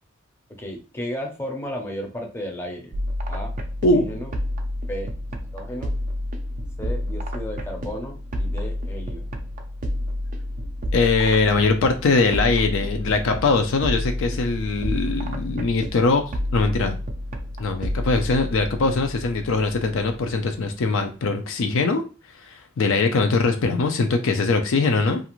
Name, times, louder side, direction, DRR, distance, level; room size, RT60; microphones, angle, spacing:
voice 1, 0.6-3.0 3.3-3.5 3.9-4.3 4.9-5.1 5.5-5.9 6.8-9.3, equal, 10° left, 1 dB, 0.5 m, -33 dB
sound 1, 2.9-20.5, left 1 dB, 40° right, 0.4 m, -30 dB
voice 2, 10.9-16.2 16.5-17.0 17.6-22.0 22.5-25.2, left 3 dB, 65° left, 5 dB, 0.4 m, -21 dB
2.5 x 2.4 x 2.9 m, 0.33 s
head